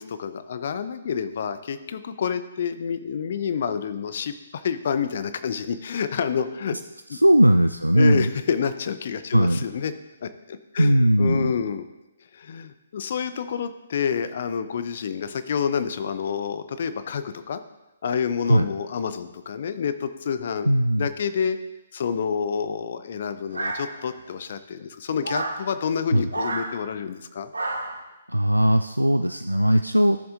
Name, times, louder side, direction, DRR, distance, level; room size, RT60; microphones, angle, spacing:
voice 1, 0.0-6.8 7.9-9.9 10.2-11.9 12.3-17.6 18.0-20.7 21.0-21.6 21.9-27.5, left 7 dB, 45° left, 11 dB, 0.6 m, -28 dB
voice 2, 7.1-8.3 9.3-9.6 10.8-11.5 18.5-18.7 20.7-21.1 26.1-26.3 28.3-30.2, equal, 90° right, 7 dB, 0.3 m, -19 dB
sound 1, 23.5-24.3 25.2-25.6 26.3-26.7 27.5-28.0, right 2 dB, 70° right, 1.1 m, -30 dB
14.0 x 7.0 x 2.5 m, 1.0 s
figure-of-eight pair, 130°, 0 cm